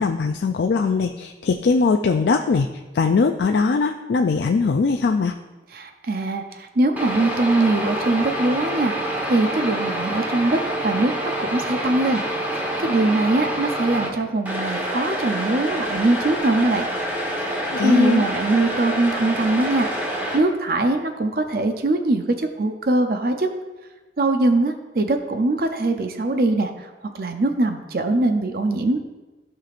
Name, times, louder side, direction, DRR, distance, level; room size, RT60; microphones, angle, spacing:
voice 1, 0.0-2.7 2.9-5.3 17.7-18.3, left 4 dB, 75° left, 5 dB, 0.4 m, -20 dB
voice 2, 5.7-12.2 12.8-16.9 17.5-19.9 20.3-23.5 24.2-29.0, right 2 dB, 55° right, 6 dB, 0.6 m, -22 dB
sound 1, 7.0-14.1 14.4-20.4, right 1 dB, 10° right, 1.2 m, -27 dB
14.5 x 5.9 x 2.5 m, 1.2 s
head